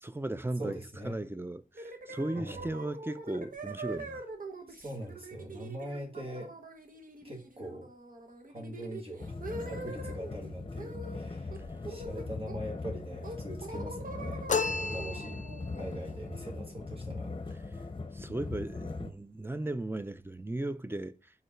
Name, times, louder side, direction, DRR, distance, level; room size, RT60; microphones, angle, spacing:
voice 1, 0.0-0.8 1.0-4.2 17.7-17.8 18.1-21.2, right 1 dB, 15° right, 0.5 m, -36 dB
voice 2, 0.6-1.2 2.3-2.7 4.7-6.5 7.2-7.9 8.5-9.4 9.7-15.5 15.8-17.3, equal, 40° right, 2.2 m, -42 dB
sound 1, 1.7-10.3 10.8-11.2 11.5-12.8 13.2-17.0, right 2 dB, 75° right, 1.0 m, -44 dB
sound 2, 9.2-19.1, left 3 dB, 40° left, 0.8 m, -40 dB
sound 3, 14.5-15.7, left 5 dB, 60° left, 0.4 m, -32 dB
5.3 x 4.0 x 4.4 m
wide cardioid pair, 50°, 14 cm